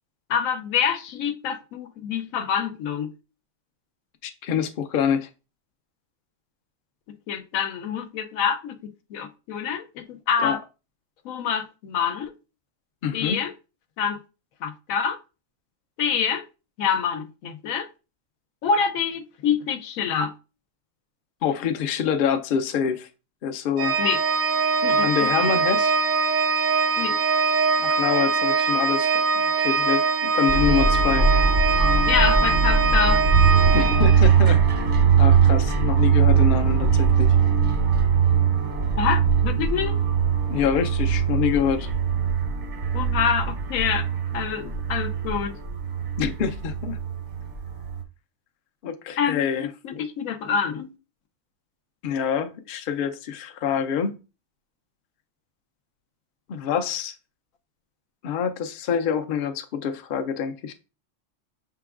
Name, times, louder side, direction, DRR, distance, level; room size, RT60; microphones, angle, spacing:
voice 1, 0.3-3.1 7.3-8.8 9.1-10.6 11.2-12.3 13.1-13.5 14.0-14.2 14.6-15.2 16.0-16.4 16.8-17.9 18.6-20.3 24.0-24.2 24.8-25.5 27.0-27.2 32.1-33.2 39.0-40.0 42.9-44.1 44.3-45.6 49.2-50.9, left 7 dB, 85° left, 1.1 m, -26 dB
voice 2, 4.2-5.3 10.4-10.6 13.0-13.4 21.4-23.1 23.4-24.0 25.0-25.9 27.8-29.1 29.4-31.3 33.7-34.6 35.2-37.4 40.5-41.9 46.2-47.0 48.8-49.7 52.0-54.2 56.5-57.1 58.2-60.7, left 7 dB, 60° left, 0.6 m, -26 dB
Organ, 23.8-34.6, right 4 dB, 85° right, 1.0 m, -22 dB
sound 1, 30.5-48.0, right 6 dB, 45° right, 0.7 m, -21 dB
5.9 x 3.7 x 2.4 m
omnidirectional pair, 1.4 m